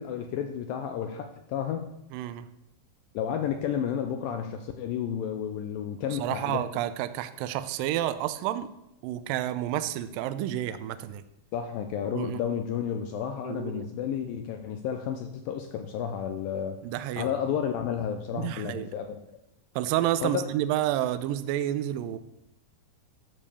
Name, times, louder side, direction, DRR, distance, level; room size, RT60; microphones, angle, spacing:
voice 1, 0.0-1.9 3.1-6.6 11.5-16.8 17.2-19.2 20.2-20.4, left 8 dB, 80° left, 6 dB, 2.2 m, -31 dB
voice 2, 2.1-2.5 6.1-8.7 9.0-11.2 12.1-12.4 13.4-13.9 16.8-17.3 18.3-18.9 19.8-22.2, right 12 dB, 80° right, 11 dB, 2.1 m, -30 dB
13.0 x 5.2 x 6.9 m, 0.85 s
omnidirectional pair, 4.5 m